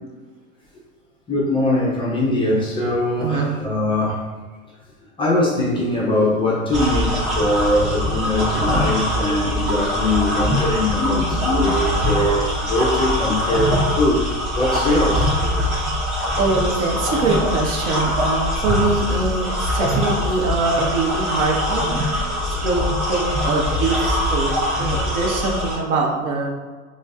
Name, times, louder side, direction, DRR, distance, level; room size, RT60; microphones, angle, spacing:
voice 1, 1.3-4.2 5.2-14.3 14.6-15.3, left 1 dB, 15° left, -6 dB, 0.4 m, -21 dB
voice 2, 3.2-3.5 14.9-15.1 16.4-22.0 22.4-26.5, right 3 dB, 65° right, 0 dB, 1.0 m, -23 dB
sound 1, 6.7-25.8, left 1 dB, 30° right, 1.4 m, -22 dB
6.0 x 2.4 x 2.3 m, 1.4 s
supercardioid pair, 135°, 41 cm